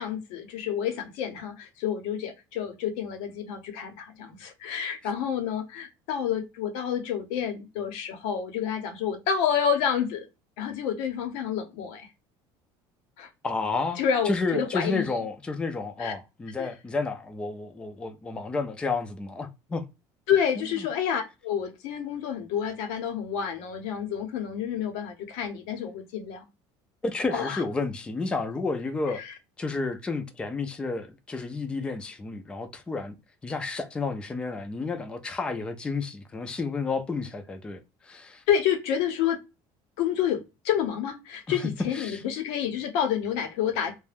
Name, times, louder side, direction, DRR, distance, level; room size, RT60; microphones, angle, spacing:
voice 1, 0.0-10.3 10.6-12.1 13.2-13.3 14.0-15.1 16.0-16.1 16.6-16.7 20.3-26.5 27.3-27.6 29.1-29.3 38.5-39.4 40.0-44.0, left 8 dB, 85° left, 0.8 m, -29 dB
voice 2, 13.4-14.0 14.2-19.8 20.6-20.7 27.0-29.2 29.6-33.1 33.4-38.4 41.5-42.2, left 3 dB, 10° left, 0.3 m, -31 dB
2.4 x 2.1 x 3.3 m
cardioid pair, 165°, 11 cm